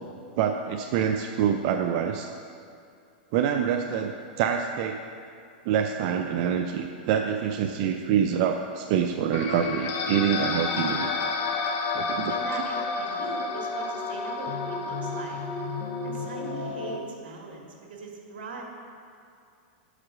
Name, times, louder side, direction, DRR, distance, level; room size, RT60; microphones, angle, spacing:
voice 1, 0.4-2.3 3.3-5.0 5.7-11.1 11.9-12.5, right 8 dB, 50° right, 4 dB, 0.4 m, -26 dB
sound 1, 9.3-17.0, left 4 dB, 35° left, 0.8 m, -30 dB
voice 2, 12.3-15.4 16.0-18.6, right 3 dB, 80° right, 0 dB, 1.6 m, -40 dB
7.3 x 4.9 x 6.0 m, 2.4 s
supercardioid pair, 140°, 5 cm